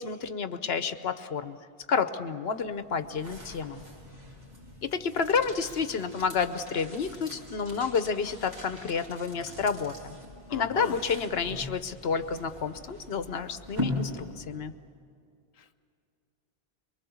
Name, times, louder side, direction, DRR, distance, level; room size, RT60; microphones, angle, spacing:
voice 1, 0.0-1.6 1.9-3.8 4.8-10.1 10.5-14.7, left 6 dB, 75° left, 11 dB, 1.1 m, -30 dB
sound 1, 2.5-14.7, left 1 dB, 45° right, 4.7 m, -41 dB
voice 2, 10.5-11.0 15.6-15.7, left 4 dB, 40° left, 6 dB, 0.8 m, -39 dB
23.5 x 23.0 x 7.1 m, 2.4 s
omnidirectional pair, 1.1 m